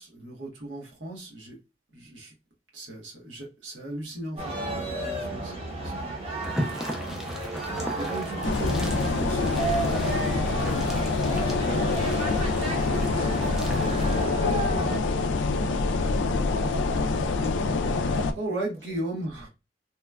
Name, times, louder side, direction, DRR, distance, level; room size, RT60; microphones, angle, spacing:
voice 1, 0.0-1.6 1.9-2.3 2.7-6.2 8.0-9.4 16.0-16.2 17.1-17.4 18.3-19.5, right 2 dB, 80° right, 1.0 m, -36 dB
sound 1, 4.4-15.0, right 2 dB, 30° right, 0.7 m, -32 dB
sound 2, 6.4-14.3, equal, ahead, 0.3 m, -38 dB
sound 3, 8.4-18.3, left 3 dB, 80° left, 0.3 m, -26 dB
voice 2, 17.3-17.5 18.8-19.0, left 1 dB, 15° left, 0.8 m, -53 dB
2.9 x 2.2 x 2.2 m
head